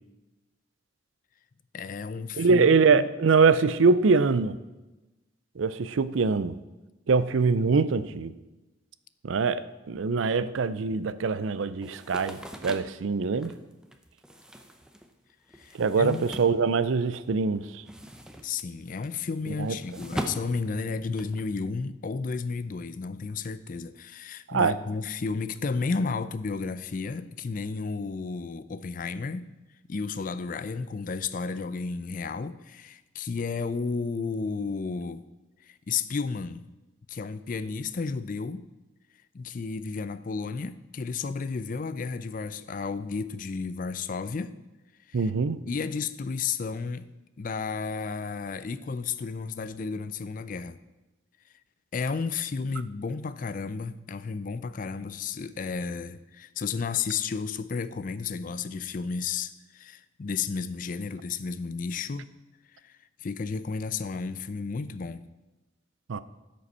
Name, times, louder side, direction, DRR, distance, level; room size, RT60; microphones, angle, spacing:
voice 1, 1.7-3.1 15.6-16.2 18.4-29.5 29.9-35.2 35.6-36.7 37.1-38.6 39.3-44.5 45.1-45.3 45.7-47.1 47.4-50.8 51.9-62.3 62.8-65.2, left 4 dB, 45° left, 0.4 m, -32 dB
voice 2, 2.4-4.6 5.6-6.5 7.1-8.3 9.2-13.5 15.7-17.8 19.6-19.8 24.5-24.7 45.1-45.6 66.1-66.2, right 4 dB, 80° right, 0.5 m, -23 dB
sound 1, 11.8-17.3 17.6-21.5, equal, 5° right, 0.6 m, -41 dB
12.5 x 5.3 x 5.5 m
head